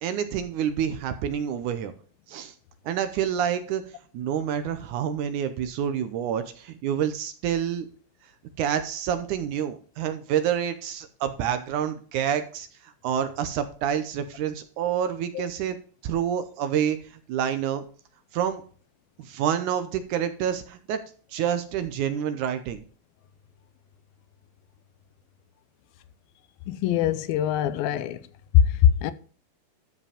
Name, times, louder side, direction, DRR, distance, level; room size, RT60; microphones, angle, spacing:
voice 1, 0.0-1.9 2.3-2.5 2.9-3.8 4.1-7.9 8.6-15.8 16.0-17.0 17.3-17.8 18.3-18.6 19.2-21.0 21.3-22.8, right 9 dB, 75° right, 2.0 m, -28 dB
voice 2, 26.7-28.2 28.5-29.1, left 10 dB, 85° left, 2.5 m, -22 dB
13.0 x 5.0 x 5.0 m
omnidirectional pair, 4.2 m